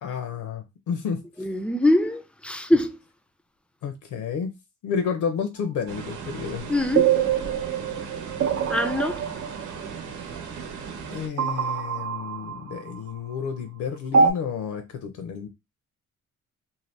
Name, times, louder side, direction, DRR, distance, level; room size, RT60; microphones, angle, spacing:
voice 1, 0.0-1.3 3.8-4.6 4.8-6.7 11.1-15.5, left 6 dB, 75° left, 0.7 m, -31 dB
voice 2, 1.4-3.0 6.7-7.4 8.7-9.2, left 1 dB, 5° left, 0.4 m, -23 dB
sound 1, 5.9-11.3, right 5 dB, 80° right, 0.9 m, -37 dB
sound 2, 7.0-10.0 11.4-13.4 14.1-14.3, right 6 dB, 50° right, 0.6 m, -24 dB
2.7 x 2.1 x 3.2 m
cardioid pair, 90°, 30 cm